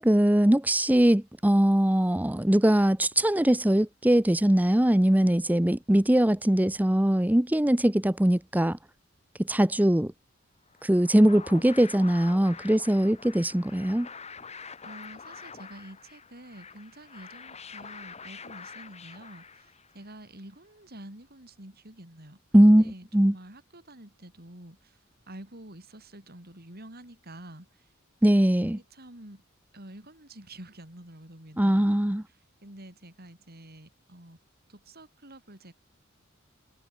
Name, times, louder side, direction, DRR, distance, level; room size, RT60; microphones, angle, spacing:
voice 1, 0.0-8.8 9.4-10.1 10.8-14.1 22.5-23.3 28.2-28.8 31.6-32.2, right 1 dB, 10° right, 0.7 m, -21 dB
sound 1, 10.7-20.1, left 5 dB, 35° left, 2.1 m, -46 dB
voice 2, 14.8-22.4 22.7-25.0 25.3-27.9 28.7-29.4 29.7-32.0 32.6-34.4 34.7-35.7, right 1 dB, 50° right, 6.2 m, -48 dB
head